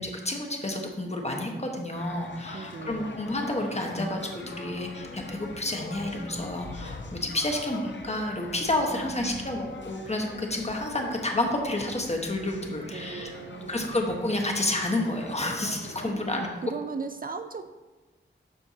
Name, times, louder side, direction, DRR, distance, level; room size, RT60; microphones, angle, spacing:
voice 1, 0.0-13.3 13.7-16.5, left 1 dB, 30° left, 1 dB, 1.2 m, -30 dB
sound 1, 1.9-16.1, left 3 dB, 60° left, 0.7 m, -43 dB
voice 2, 2.5-3.4 8.9-9.6 12.8-14.0 16.0-17.7, right 5 dB, 45° right, 8 dB, 0.4 m, -38 dB
12.5 x 4.4 x 2.8 m, 1.2 s
wide cardioid pair, 65°, 21 cm